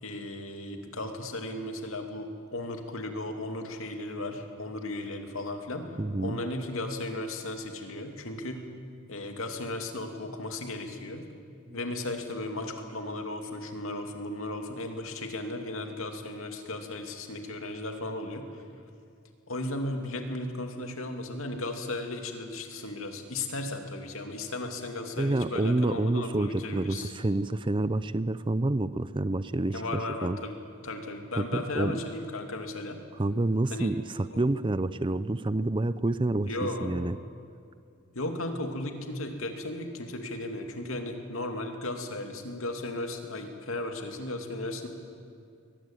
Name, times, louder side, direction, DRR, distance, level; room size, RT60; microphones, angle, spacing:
voice 1, 0.0-5.9 6.2-8.7 9.1-11.3 11.7-18.6 19.5-27.1 29.7-30.5 30.8-33.0 33.7-33.9 34.3-34.4 36.5-37.0 38.1-44.9, left 2 dB, 70° left, 4 dB, 2.7 m, -35 dB
voice 2, 6.0-6.4 11.7-11.8 25.2-30.4 31.4-32.0 33.2-34.0 34.4-37.2, right 2 dB, 25° right, 15 dB, 0.5 m, -28 dB
22.5 x 20.0 x 9.1 m, 2.4 s
head